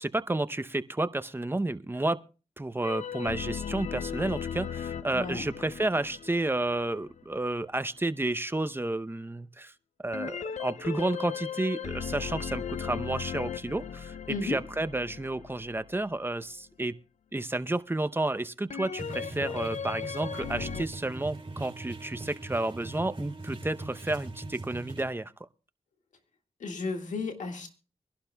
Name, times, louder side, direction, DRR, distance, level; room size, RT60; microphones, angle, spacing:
voice 1, 0.0-2.2 2.6-9.7 10.0-16.9 17.3-25.3, right 2 dB, 15° right, 0.7 m, -31 dB
sound 1, 2.8-7.4 10.1-16.2 18.7-20.9, left 7 dB, 65° left, 0.5 m, -37 dB
voice 2, 5.1-5.5 14.3-14.6 26.6-27.7, left 4 dB, 90° left, 1.8 m, -33 dB
sound 2, 19.0-25.1, right 2 dB, 45° right, 3.4 m, -41 dB
24.0 x 11.5 x 2.3 m
cardioid pair, 50°, 13 cm